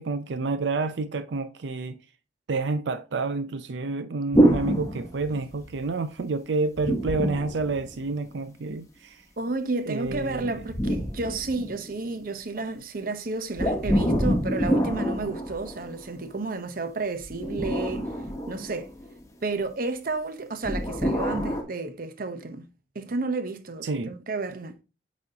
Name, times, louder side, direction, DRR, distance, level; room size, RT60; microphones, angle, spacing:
voice 1, 0.0-2.0 2.5-9.2 9.9-10.5 23.8-24.1, right 3 dB, 90° right, 0.5 m, -29 dB
sound 1, 4.3-5.8 6.8-8.4 10.1-12.1 13.6-16.1 17.2-19.1 20.6-21.6, equal, 20° left, 1.1 m, -26 dB
voice 2, 9.4-18.1 18.5-18.9 19.4-22.7 22.9-24.8, right 3 dB, 55° right, 0.8 m, -31 dB
8.4 x 4.2 x 2.8 m
head